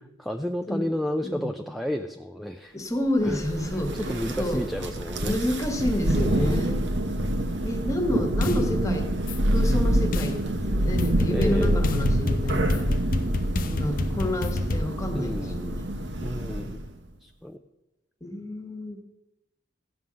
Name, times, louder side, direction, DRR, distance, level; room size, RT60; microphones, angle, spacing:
voice 1, 0.2-2.8 3.2-3.4 3.7-5.4 6.2-6.7 11.3-11.9 15.1-15.8 16.2-16.8 17.2-17.6, equal, ahead, 5 dB, 0.4 m, -31 dB
voice 2, 2.7-4.1 4.4-4.7 5.3-6.8 7.6-9.1 9.5-10.4 10.7-12.8 13.6-15.9 18.2-19.1, left 1 dB, 20° left, 4 dB, 1.6 m, -29 dB
Thunder, 3.3-16.9, right 1 dB, 70° right, 1.2 m, -26 dB
sound 1, 8.4-8.6 9.3-9.4 10.1-10.3 11.0-14.8, left 2 dB, 50° left, 0.7 m, -29 dB
15.0 x 5.5 x 7.6 m, 0.97 s
head